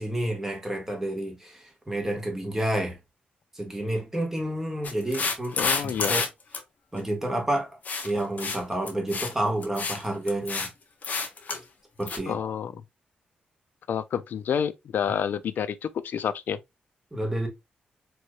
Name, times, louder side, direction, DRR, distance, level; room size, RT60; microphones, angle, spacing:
voice 1, 0.0-3.0 3.6-5.6 5.8-6.2 6.9-7.7 8.0-10.7 12.0-12.4 17.1-17.5, right 1 dB, 10° right, 1.7 m, -29 dB
sound 1, 4.8-6.3 6.5-6.6 7.8-8.1 8.4-8.6 8.9-9.3 9.6-10.0 10.3-10.7 11.0-11.6 12.1-12.2, left 4 dB, 55° left, 1.0 m, -29 dB
voice 2, 5.6-6.2 12.3-12.8 13.9-16.6, left 8 dB, 75° left, 0.4 m, -29 dB
4.5 x 3.0 x 2.4 m
cardioid pair, 75°, 3 cm